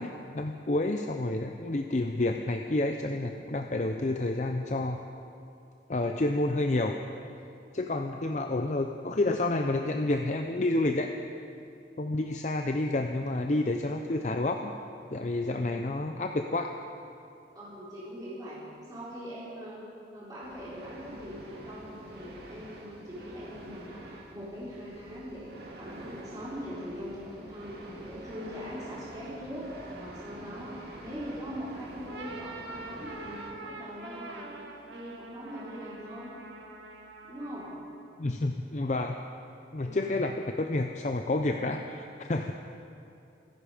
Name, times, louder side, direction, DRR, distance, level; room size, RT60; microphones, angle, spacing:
voice 1, 0.0-5.0 5.9-7.0 7.7-11.1 12.0-14.7 15.1-16.7 38.2-39.2 39.7-42.5, left 2 dB, 40° left, 5 dB, 0.6 m, -29 dB
voice 2, 17.5-18.6 18.9-19.8 20.1-34.5 34.9-36.3 37.2-37.7 39.8-40.0, equal, 20° right, -9 dB, 4.2 m, -41 dB
sound 1, 20.4-33.5, right 1 dB, 60° right, 2.4 m, -47 dB
sound 2, 32.1-37.9, right 2 dB, 80° right, 1.9 m, -45 dB
26.5 x 10.5 x 5.0 m, 2.7 s
head